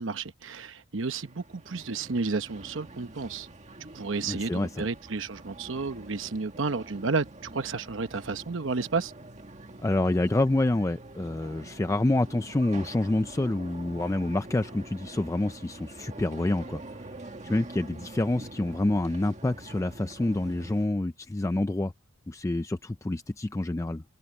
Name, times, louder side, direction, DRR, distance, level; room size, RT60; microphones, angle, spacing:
voice 1, 0.0-3.5 3.9-9.1, right 4 dB, 70° right, 0.9 m, -31 dB
sound 1, 1.0-20.9, right 2 dB, 35° right, 1.8 m, -45 dB
voice 2, 4.3-4.9 9.8-17.1 17.4-21.9 22.3-24.0, left 2 dB, 15° left, 0.4 m, -27 dB
head